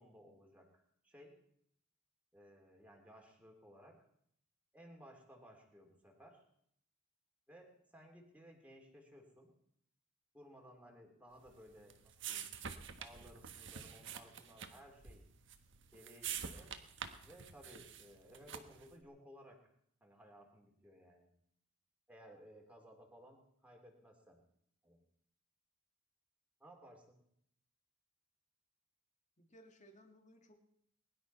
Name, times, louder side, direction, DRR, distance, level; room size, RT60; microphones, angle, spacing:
voice 1, 0.0-1.3 2.3-3.9 4.7-6.4 7.5-9.5 10.3-12.5 13.0-15.2 15.9-16.7 17.2-19.6 20.0-21.3 22.1-24.4 24.8-25.0 26.6-27.2, equal, 5° right, 0 dB, 3.1 m, -59 dB
sound 1, 11.4-18.9, right 8 dB, 60° right, 1.4 m, -47 dB
voice 2, 29.4-30.6, equal, 35° left, 5 dB, 2.3 m, -61 dB
21.0 x 11.5 x 5.6 m, 0.70 s
head